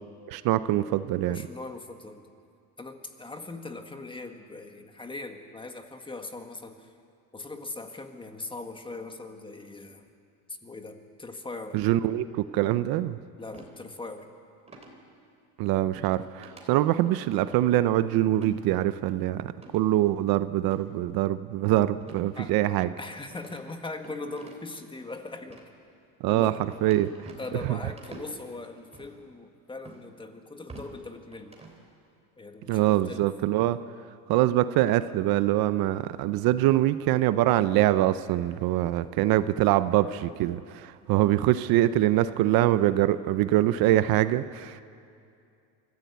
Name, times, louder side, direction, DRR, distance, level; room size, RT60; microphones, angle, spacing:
voice 1, 0.3-1.5 11.7-13.2 15.6-22.9 26.2-26.5 26.8-27.3 32.7-33.8 34.3-44.8, right 14 dB, 60° right, 13 dB, 0.7 m, -24 dB
voice 2, 1.3-2.2 2.8-6.9 7.3-10.1 10.5-11.8 13.4-14.3 22.4-22.5 23.0-25.6 26.3-26.6 27.4-31.5 32.4-33.3, left 3 dB, 10° left, 6 dB, 1.6 m, -40 dB
sound 1, 13.5-13.7 14.7-15.0 16.0-16.2 16.4-16.6 17.0-17.4 18.3-18.5 19.5-19.9 20.6-20.8 22.0-22.3 22.6-22.7 23.3-24.8 25.4-25.7 26.3-27.7 28.0-28.3 28.9-29.1 29.8-30.0 30.5-30.9 31.3-31.8, right 3 dB, 15° right, 3.3 m, -48 dB
25.0 x 14.5 x 8.2 m, 2.4 s
cardioid pair, 125°, 41 cm